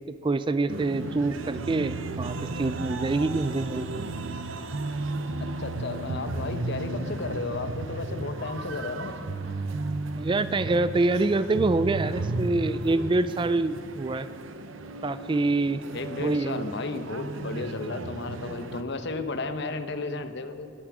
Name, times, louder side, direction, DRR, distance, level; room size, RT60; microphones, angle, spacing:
voice 1, 0.1-4.0 10.2-14.3 15.0-15.8 16.2-16.7, right 2 dB, 25° right, 14 dB, 0.4 m, -26 dB
sound 1, 0.7-18.8, right 2 dB, 75° right, 0.9 m, -34 dB
voice 2, 5.4-9.4 15.9-20.7, left 3 dB, 60° left, 9 dB, 1.0 m, -33 dB
21.0 x 8.6 x 6.1 m, 2.8 s
head